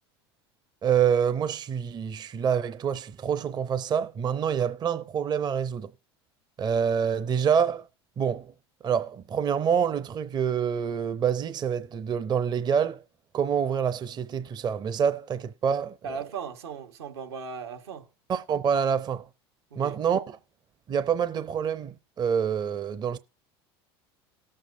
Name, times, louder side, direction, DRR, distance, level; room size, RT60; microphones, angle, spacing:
voice 1, 0.8-5.9 6.6-7.9 8.2-8.5 8.8-13.0 13.3-16.0 18.3-19.3 19.8-20.4 20.9-23.2, right 7 dB, 30° right, 0.7 m, -26 dB
voice 2, 16.0-18.1 19.7-20.0, right 6 dB, 80° right, 1.5 m, -37 dB
18.5 x 7.6 x 2.6 m
hypercardioid pair, 90°, 13 cm